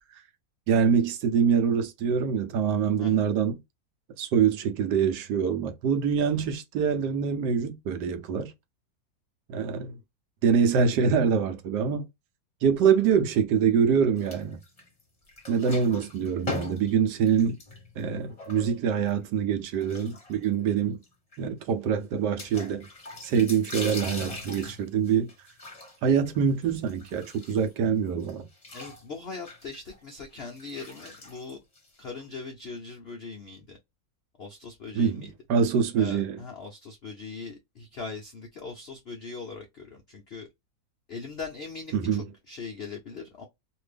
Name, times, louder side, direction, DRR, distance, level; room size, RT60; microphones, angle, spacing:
voice 1, 0.7-3.6 4.2-8.5 9.5-9.9 10.4-12.1 12.6-14.6 15.5-17.6 18.0-21.0 21.4-22.9 23.2-25.3 26.0-28.4 34.9-36.4 41.9-42.3, right 7 dB, 70° right, 1.2 m, -25 dB
sound 1, 14.2-15.0 15.3-19.1 19.7-20.7 21.0-21.1 21.3-21.4 22.4-27.9 28.2-32.2, left 2 dB, 25° left, 0.9 m, -41 dB
voice 2, 28.7-31.6 32.0-33.8 34.4-35.3 35.9-40.5 41.1-43.4, left 4 dB, 85° left, 0.5 m, -40 dB
2.8 x 2.6 x 3.3 m
omnidirectional pair, 2.0 m